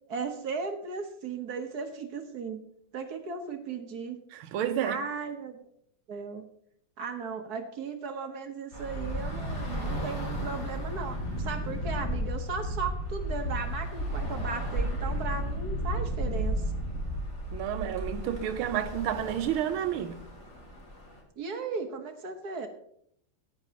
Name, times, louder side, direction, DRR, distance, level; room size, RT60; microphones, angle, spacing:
voice 1, 0.1-2.6 2.9-4.2 4.8-5.7 6.1-6.5 7.0-16.6 21.4-22.7, right 5 dB, 55° right, 1.5 m, -36 dB
voice 2, 4.3-5.0 17.5-20.2, right 10 dB, 85° right, 1.6 m, -30 dB
Bus / Traffic noise roadway noise, 8.7-21.2, equal, 35° left, 2.7 m, -33 dB
15.0 x 10.5 x 2.9 m
omnidirectional pair, 2.3 m